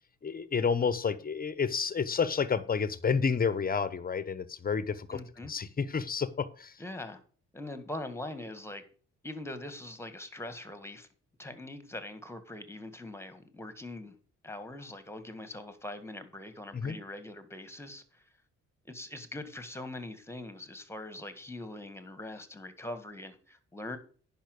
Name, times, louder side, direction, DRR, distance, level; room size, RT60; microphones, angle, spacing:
voice 1, 0.2-6.8 16.7-17.0, left 6 dB, 30° left, 0.9 m, -30 dB
voice 2, 5.1-5.5 6.8-7.2 7.5-8.8 9.2-11.1 11.4-14.2 14.4-18.2 18.9-24.0, left 1 dB, 10° left, 1.8 m, -42 dB
10.5 x 5.8 x 6.6 m
cardioid pair, 90°, 30 cm